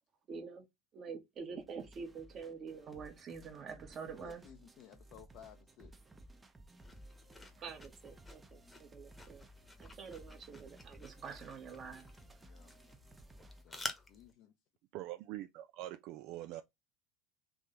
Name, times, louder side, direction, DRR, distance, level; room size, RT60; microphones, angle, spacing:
voice 1, 0.3-0.7 0.9-4.4 7.6-9.4 9.8-12.1 12.4-12.5, right 5 dB, 40° right, 1.3 m, -47 dB
sound 1, 1.6-13.6, right 2 dB, 20° right, 0.8 m, -58 dB
voice 2, 4.2-5.9 12.4-12.7 13.4-14.5, left 9 dB, 55° left, 0.7 m, -57 dB
sound 2, 6.8-14.3, left 2 dB, 15° left, 1.0 m, -50 dB
voice 3, 14.9-16.6, right 15 dB, 60° right, 0.3 m, -44 dB
3.5 x 3.1 x 3.8 m
hypercardioid pair, 70°, 0 cm